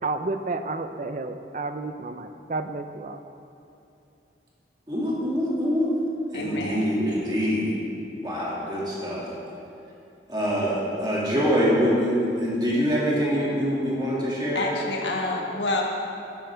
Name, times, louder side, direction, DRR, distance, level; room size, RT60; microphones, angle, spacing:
voice 1, 0.0-3.2, right 3 dB, 40° right, 9 dB, 0.5 m, -31 dB
voice 2, 4.9-5.9 6.3-7.7 8.2-9.3 10.3-14.7, equal, 25° right, -6 dB, 2.2 m, -24 dB
voice 3, 6.3-6.8 7.1-7.4 14.5-15.8, left 2 dB, 80° left, 0 dB, 1.5 m, -28 dB
12.5 x 10.0 x 3.5 m, 2.8 s
head